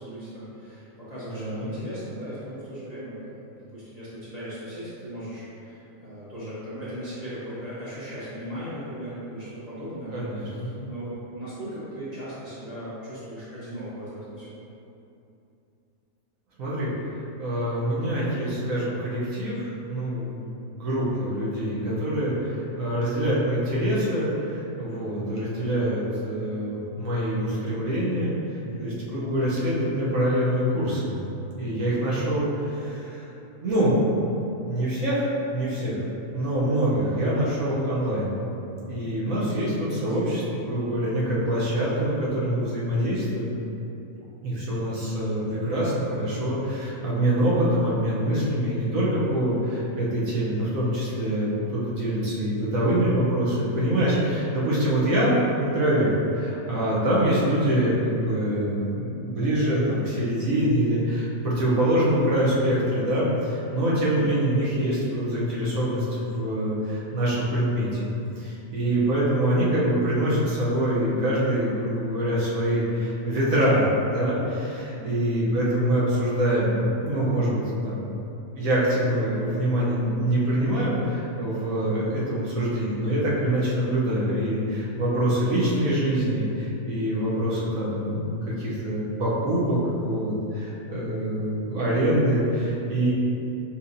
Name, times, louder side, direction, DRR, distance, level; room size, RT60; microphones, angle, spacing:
voice 1, 0.0-3.4 3.7-14.6 28.6-28.9 40.1-40.3 64.1-64.3 68.8-69.0 74.9-75.6, equal, 30° left, -13 dB, 1.1 m, -38 dB
voice 2, 1.3-1.7 10.1-10.8 16.6-16.9 17.4-28.3 28.8-31.2 31.6-33.3 33.6-34.0 34.6-36.0 36.3-38.3 38.8-43.5 44.4-55.3 55.6-67.9 68.4-78.0 78.5-93.1, right 1 dB, 70° right, -7 dB, 1.3 m, -25 dB
5.6 x 3.1 x 2.6 m, 2.8 s
omnidirectional pair, 1.6 m